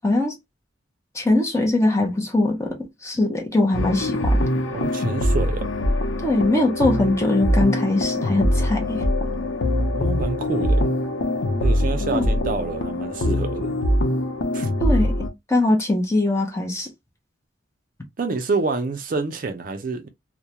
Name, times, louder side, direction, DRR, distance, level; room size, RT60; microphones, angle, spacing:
voice 1, 0.0-0.4 1.1-4.4 6.2-9.0 12.1-12.3 14.8-15.1 15.5-16.9, left 2 dB, 15° left, 0.6 m, -21 dB
sound 1, 3.7-15.3, left 1 dB, 85° left, 0.6 m, -23 dB
voice 2, 4.7-5.7 9.9-10.9 11.6-13.8 14.5-14.7 18.2-20.1, right 3 dB, 45° right, 0.4 m, -27 dB
2.2 x 2.1 x 2.8 m
head